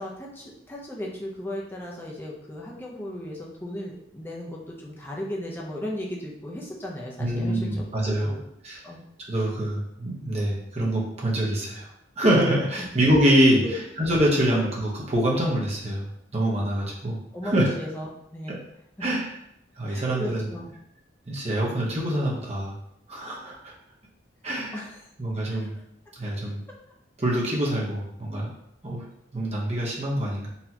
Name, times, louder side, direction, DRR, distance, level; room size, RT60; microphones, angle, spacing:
voice 1, 0.0-8.4 8.8-9.0 12.8-12.9 13.6-13.8 17.3-18.6 19.9-20.7 24.7-25.0 25.4-25.7, left 1 dB, 10° left, -3 dB, 0.6 m, -36 dB
voice 2, 7.2-8.3 8.6-8.8 9.3-11.9 12.2-16.1 16.3-17.7 19.0-19.4 19.8-20.5 21.3-22.7 23.1-23.7 24.4-24.8 25.2-25.7 26.1-26.6 27.2-28.5 28.8-29.1 29.3-30.5, right 1 dB, 35° right, -3 dB, 0.9 m, -25 dB
4.1 x 2.9 x 2.8 m, 0.76 s
head